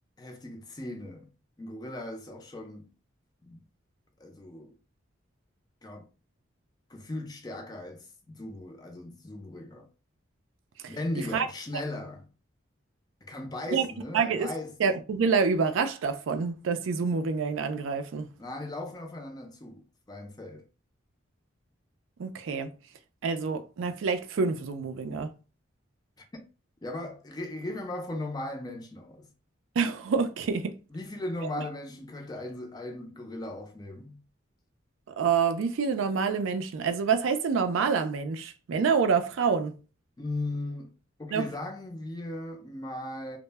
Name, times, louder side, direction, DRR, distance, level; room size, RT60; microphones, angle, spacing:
voice 1, 0.2-1.3 1.6-2.9 3.4-3.6 4.2-4.8 5.8-6.1 6.9-9.9 10.9-12.3 13.2-14.7 18.4-20.7 26.2-26.5 26.8-29.3 30.9-34.2 40.2-40.9 41.2-43.4, left 1 dB, 20° left, 0.3 m, -37 dB
voice 2, 14.1-14.5 14.8-18.3 22.2-22.7 23.2-25.3 29.8-30.8 31.5-31.7 35.1-39.7 41.3-41.5, right 5 dB, 80° right, 0.4 m, -27 dB
2.0 x 2.0 x 3.2 m
head